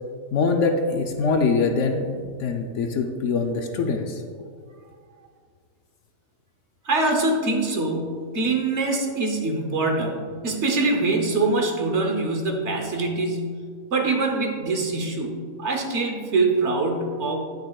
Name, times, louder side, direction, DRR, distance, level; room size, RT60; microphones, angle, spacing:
voice 1, 0.3-2.0 2.4-4.2, left 4 dB, 65° left, 4 dB, 0.9 m, -23 dB
voice 2, 6.8-13.6 13.9-17.4, right 3 dB, 55° right, 2 dB, 1.1 m, -24 dB
9.7 x 8.7 x 2.3 m, 2.1 s
omnidirectional pair, 1.5 m